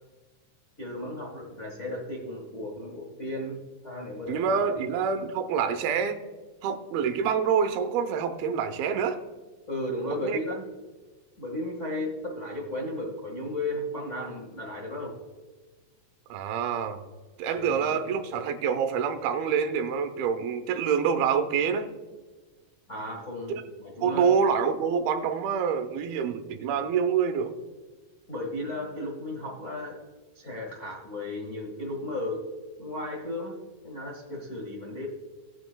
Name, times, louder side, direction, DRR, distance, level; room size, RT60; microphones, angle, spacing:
voice 1, 0.8-4.8 9.7-10.6 11.4-15.2 17.5-17.9 22.9-23.5 23.8-24.3 28.3-30.0 30.3-32.5 32.8-35.1, left 1 dB, 70° left, -1 dB, 0.7 m, -35 dB
voice 2, 4.3-6.2 6.6-9.2 10.1-10.4 16.3-17.0 17.4-21.9 23.5-23.6 24.0-27.5, right 6 dB, 85° right, 7 dB, 2.7 m, -26 dB
18.0 x 8.7 x 2.2 m, 1.3 s
omnidirectional pair, 4.3 m